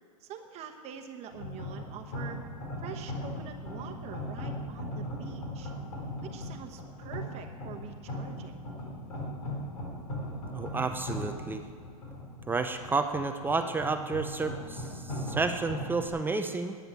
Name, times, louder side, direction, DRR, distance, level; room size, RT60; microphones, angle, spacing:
voice 1, 0.2-2.4 2.8-5.7 6.2-8.5, right 8 dB, 35° right, 4 dB, 1.1 m, -45 dB
sound 1, 1.3-16.1, left 1 dB, 80° left, 4.0 m, -39 dB
voice 2, 10.5-11.6 12.5-16.8, right 3 dB, 10° right, 7 dB, 0.5 m, -31 dB
10.5 x 9.2 x 8.9 m, 2.2 s
hypercardioid pair, 125°, 19 cm